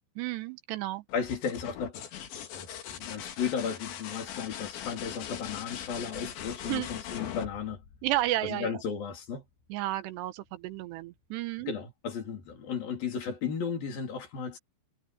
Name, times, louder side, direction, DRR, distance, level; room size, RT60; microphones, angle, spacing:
voice 1, 0.2-1.0 6.7-6.9 8.0-8.7 9.7-11.7, right 16 dB, 80° right, 3.0 m, -32 dB
sound 1, 1.1-8.7 10.5-11.0, left 9 dB, 90° left, 4.6 m, -41 dB
voice 2, 1.1-2.0 2.5-7.8 8.4-9.4 11.7-14.6, left 6 dB, 55° left, 5.1 m, -34 dB
omnidirectional pair, 5.0 m